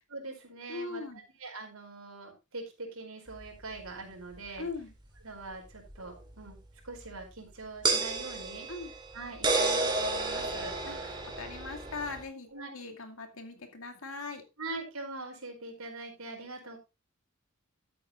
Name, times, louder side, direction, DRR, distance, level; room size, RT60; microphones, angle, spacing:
voice 1, 0.1-4.7 5.2-6.6 6.8-8.7 9.1-10.7 12.5-12.7 14.6-16.8, right 3 dB, 75° right, 1 dB, 4.9 m, -43 dB
voice 2, 0.7-1.2 4.6-4.9 8.7-8.9 10.8-14.5, left 3 dB, 65° left, 5 dB, 2.4 m, -40 dB
sound 1, 3.4-3.5 5.9-6.0 7.8-12.2, right 3 dB, 20° right, 2.4 m, -31 dB
13.5 x 8.7 x 3.0 m, 0.26 s
head